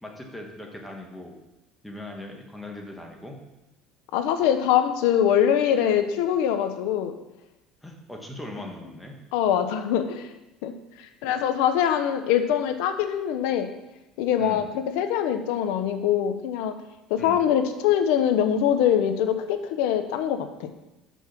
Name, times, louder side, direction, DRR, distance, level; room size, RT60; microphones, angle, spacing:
voice 1, 0.0-1.4 1.8-3.4 7.8-9.2 14.4-14.7 17.2-17.5, left 1 dB, 5° left, 1 dB, 1.3 m, -39 dB
voice 2, 4.1-7.1 9.3-10.3 10.6-10.7 11.2-13.7 14.2-16.8 17.1-20.7, left 9 dB, 80° left, 9 dB, 0.7 m, -23 dB
6.1 x 5.4 x 6.0 m, 0.98 s
cardioid pair, 140°, 0 cm